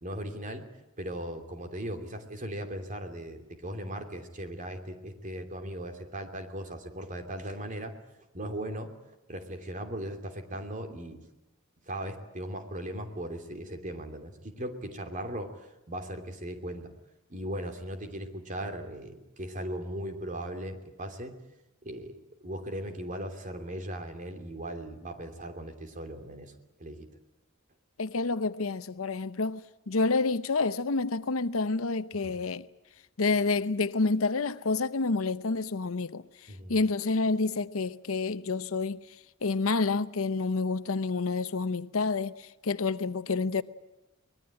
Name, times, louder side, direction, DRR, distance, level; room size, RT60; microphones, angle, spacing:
voice 1, 0.0-0.7 1.0-7.9 8.3-8.9 9.3-11.2 11.9-15.6 15.9-16.9 17.3-21.3 21.8-22.1 22.4-26.5 26.8-27.1 32.1-32.4 36.5-36.7, right 1 dB, 40° right, 2.9 m, -38 dB
voice 2, 28.0-32.7 33.2-36.2 36.7-39.0 39.4-43.6, left 3 dB, 80° left, 0.8 m, -28 dB
24.5 x 20.5 x 9.0 m
head